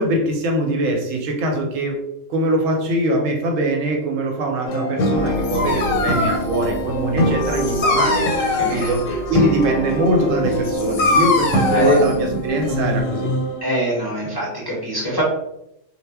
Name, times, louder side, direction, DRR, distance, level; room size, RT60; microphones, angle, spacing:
voice 1, 0.0-2.0 2.3-8.2 8.6-13.3, right 1 dB, 90° right, 3 dB, 1.0 m, -22 dB
sound 1, 4.7-13.6, equal, 85° left, 1.0 m, -24 dB
Dog, 5.1-13.0, left 3 dB, 65° left, 0.7 m, -24 dB
voice 2, 8.6-8.9 11.7-12.0 13.6-15.2, equal, 30° left, -6 dB, 0.4 m, -22 dB
2.1 x 2.0 x 3.3 m, 0.82 s
omnidirectional pair, 1.3 m